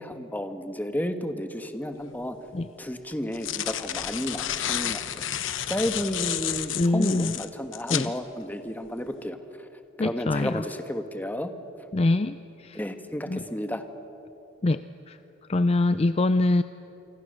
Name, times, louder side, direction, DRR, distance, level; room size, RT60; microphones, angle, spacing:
voice 1, 0.0-2.4 2.8-5.0 5.7-9.7 10.0-11.5 12.7-13.8, equal, 10° left, 7 dB, 1.3 m, -32 dB
sound 1, 2.0-2.1 3.1-8.1, left 11 dB, 80° left, 0.9 m, -31 dB
voice 2, 6.7-7.4 7.9-8.1 10.0-10.6 11.9-12.8 13.3-13.4 14.6-14.8 15.1-15.2 15.5-16.6, left 2 dB, 30° left, 12 dB, 0.5 m, -24 dB
28.0 x 25.0 x 6.6 m, 3.0 s
head